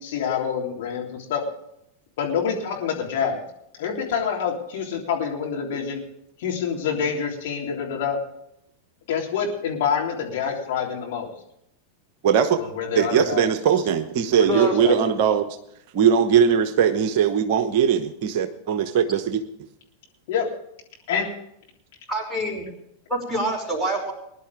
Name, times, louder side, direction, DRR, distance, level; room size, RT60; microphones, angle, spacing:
voice 1, 0.0-1.4 2.2-3.4 3.8-6.0 6.4-8.2 9.1-11.3 12.6-13.5 14.4-14.9 20.3-20.5 21.1-21.3, left 7 dB, 55° left, -1 dB, 3.5 m, -26 dB
voice 2, 12.2-12.6 12.9-15.5 15.9-19.4, right 7 dB, 45° right, 9 dB, 1.0 m, -20 dB
voice 3, 14.4-14.8 22.1-22.6 23.1-24.1, right 1 dB, ahead, -1 dB, 5.6 m, -26 dB
21.0 x 11.0 x 3.6 m, 0.76 s
figure-of-eight pair, 90°, 0 cm